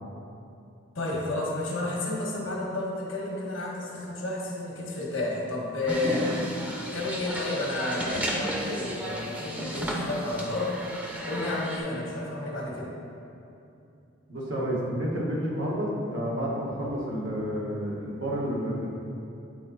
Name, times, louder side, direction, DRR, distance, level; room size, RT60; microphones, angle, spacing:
voice 1, 0.9-6.3 6.8-10.8 11.2-12.9, left 2 dB, 85° left, -2 dB, 1.6 m, -31 dB
sound 1, 5.9-11.8, equal, 5° right, 0.6 m, -33 dB
voice 2, 14.3-18.9, equal, 75° right, -5 dB, 1.8 m, -30 dB
9.7 x 4.2 x 4.1 m, 2.7 s
head